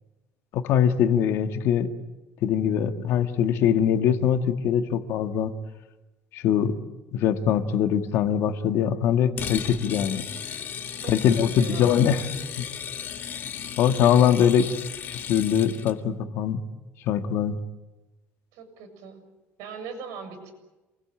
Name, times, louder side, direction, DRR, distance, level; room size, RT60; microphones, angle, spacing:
voice 1, 0.5-1.9 2.4-5.5 6.3-6.8 7.1-10.3 11.1-12.2 12.6-12.7 13.8-14.7 15.1-16.6 17.0-17.6, left 9 dB, 55° left, 8 dB, 1.8 m, -22 dB
sound 1, 9.4-16.0, left 8 dB, 40° left, 1.9 m, -35 dB
voice 2, 11.0-12.2 18.5-19.2 19.6-20.5, right 5 dB, 85° right, 8 dB, 7.1 m, -40 dB
28.5 x 21.5 x 8.9 m, 1.1 s
cardioid pair, 170°, 5 cm